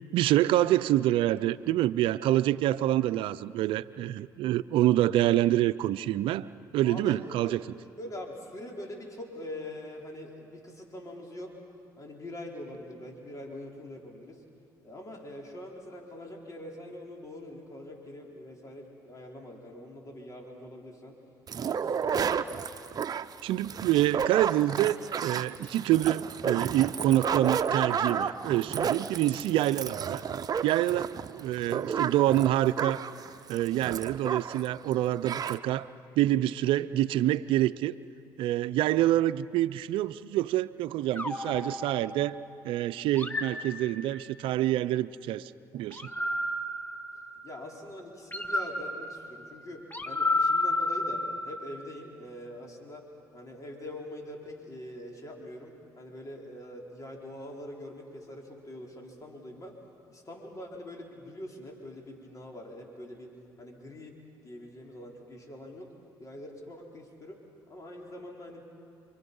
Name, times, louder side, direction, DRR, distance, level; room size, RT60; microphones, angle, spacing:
voice 1, 0.1-6.5 6.7-7.6 23.4-30.2 30.6-33.0 33.5-35.9 36.2-38.0 38.4-42.4 42.6-46.1, right 14 dB, 75° right, 15 dB, 0.6 m, -26 dB
voice 2, 6.8-7.6 8.0-11.5 12.0-14.4 14.8-21.2 21.6-22.6 47.4-59.8 60.1-63.3 63.6-64.1 64.4-65.9 66.2-68.6, left 1 dB, 40° left, 0 dB, 4.4 m, -44 dB
sound 1, 21.5-34.7 34.9-35.0 35.2-35.6, right 7 dB, 45° right, 0.8 m, -32 dB
sound 2, 41.2-42.5 43.2-44.4 45.9-47.6 48.3-51.8, left 2 dB, 20° left, 1.8 m, -32 dB
29.0 x 24.5 x 5.5 m, 2.5 s
supercardioid pair, 70°, 9 cm